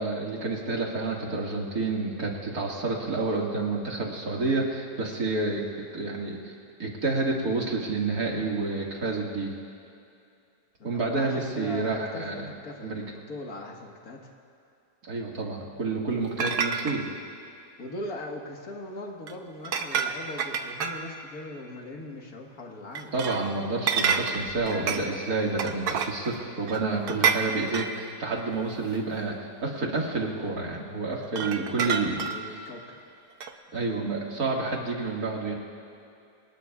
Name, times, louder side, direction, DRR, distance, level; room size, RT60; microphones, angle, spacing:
voice 1, 0.0-5.6 5.9-6.5 6.8-9.5 10.8-12.4 12.8-13.0 15.0-17.0 23.1-32.2 33.7-35.5, right 3 dB, 75° right, -1 dB, 2.5 m, -29 dB
voice 2, 10.8-14.3 17.8-23.1 31.6-33.0, left 2 dB, 70° left, 1 dB, 2.0 m, -40 dB
sound 1, 16.4-17.0 19.3-19.4 19.6-21.2 23.0-23.5 23.9-25.1 25.6-26.4 26.7-28.0 28.9-29.0 31.2-32.6 33.4-33.5, right 6 dB, 90° right, 1.4 m, -28 dB
25.5 x 19.5 x 2.4 m, 2.5 s
omnidirectional pair, 1.6 m